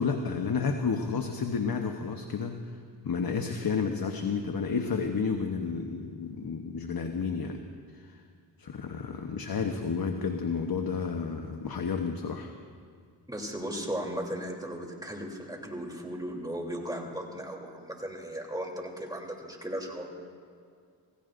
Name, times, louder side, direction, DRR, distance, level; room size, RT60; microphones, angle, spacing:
voice 1, 0.0-2.6 3.0-7.6 7.9-8.1 8.6-12.5, left 5 dB, 50° left, 5 dB, 1.0 m, -31 dB
voice 2, 13.3-20.1, equal, 10° right, 0 dB, 3.2 m, -36 dB
27.5 x 16.5 x 2.6 m, 2.2 s
cardioid pair, 55°, 45 cm